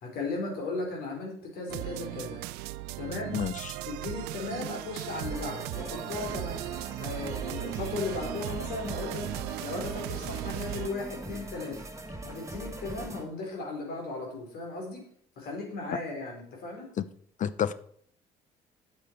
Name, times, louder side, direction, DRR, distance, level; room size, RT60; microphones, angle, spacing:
voice 1, 0.0-2.4 3.0-3.4 3.9-6.6 7.0-9.3 9.6-11.8 12.2-15.1 15.4-16.9, left 3 dB, 60° left, 4.3 m, -36 dB
sound 1, 1.7-10.9, right 17 dB, 70° right, 0.4 m, -37 dB
voice 2, 3.3-3.7 17.0-17.1 17.4-17.7, left 8 dB, 45° left, 0.7 m, -29 dB
sound 2, 5.2-13.2, right 1 dB, 15° right, 2.0 m, -41 dB
9.8 x 8.2 x 4.6 m
hypercardioid pair, 60°, 18 cm